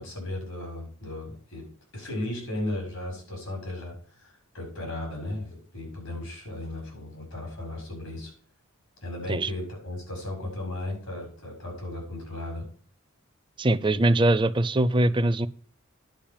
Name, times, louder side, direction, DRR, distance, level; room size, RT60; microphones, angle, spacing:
voice 1, 0.0-1.6 1.9-8.3 9.0-12.7, left 1 dB, 90° left, 1 dB, 6.8 m, -35 dB
voice 2, 13.6-15.5, right 1 dB, 25° right, 13 dB, 0.5 m, -22 dB
10.5 x 5.3 x 7.2 m, 0.43 s
head